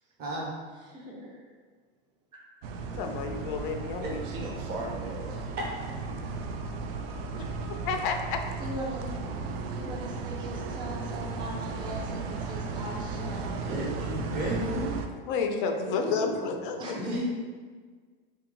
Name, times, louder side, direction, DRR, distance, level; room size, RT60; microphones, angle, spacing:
voice 1, 0.2-0.5 4.0-4.1 5.6-5.7 13.7-14.9 17.0-17.2, right 1 dB, 35° right, -4 dB, 1.1 m, -32 dB
voice 2, 0.9-1.4 7.4-7.5 8.6-9.1 9.7-13.7 16.8-17.2, equal, 15° right, -3 dB, 0.6 m, -40 dB
sound 1, 2.6-15.1, right 4 dB, 85° right, 0.5 m, -35 dB
voice 3, 2.9-4.2 7.4-8.4 15.3-16.9, left 5 dB, 65° left, 5 dB, 0.5 m, -31 dB
voice 4, 4.2-5.5 13.6-14.4 15.8-16.8, right 2 dB, 65° right, -1 dB, 0.9 m, -37 dB
2.9 x 2.9 x 3.7 m, 1.5 s
supercardioid pair, 135°, 29 cm